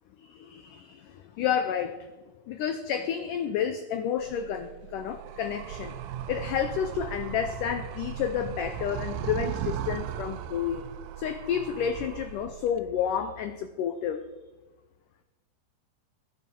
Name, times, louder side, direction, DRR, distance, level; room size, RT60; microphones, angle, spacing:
voice 1, 0.2-2.1 2.5-6.0 6.3-10.9 11.2-14.2, left 8 dB, 85° left, 9 dB, 1.8 m, -30 dB
Animal, 4.2-12.8, right 10 dB, 90° right, 2.9 m, -37 dB
20.0 x 10.5 x 5.4 m, 1.2 s
omnidirectional pair, 4.7 m